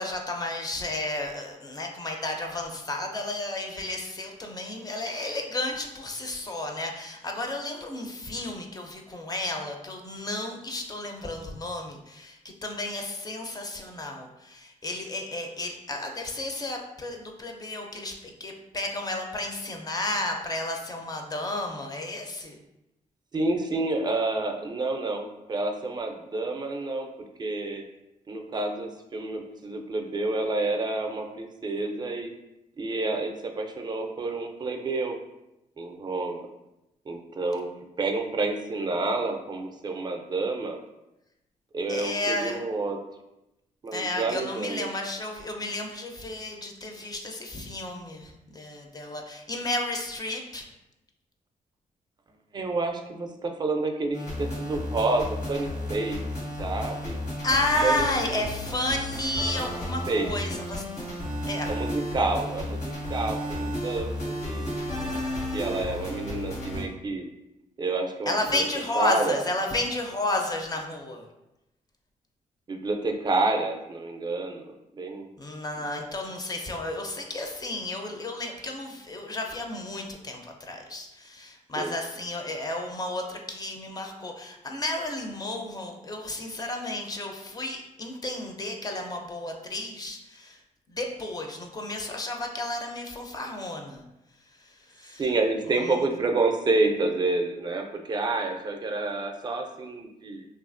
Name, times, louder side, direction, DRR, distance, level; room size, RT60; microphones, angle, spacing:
voice 1, 0.0-22.6 41.9-42.6 43.9-50.7 57.4-60.8 61.5-61.7 68.3-71.3 75.4-90.6 90.9-94.0 94.6-95.2 95.7-96.1, left 2 dB, 25° left, 2 dB, 0.4 m, -32 dB
voice 2, 23.3-27.1 27.4-27.8 28.3-32.3 32.8-35.2 35.8-36.5 37.1-37.7 38.0-40.8 41.7-43.0 43.8-44.9 52.5-56.2 56.6-57.2 57.8-58.1 58.3-58.4 60.1-60.3 61.7-64.2 64.4-67.2 67.8-68.6 69.0-69.4 72.7-75.3 81.8-82.0 95.2-100.5, right 3 dB, 30° right, 4 dB, 0.4 m, -29 dB
sound 1, 54.1-66.8, left 1 dB, 85° left, 1.1 m, -33 dB
2.7 x 2.4 x 2.5 m, 0.91 s
cardioid pair, 75°, 14 cm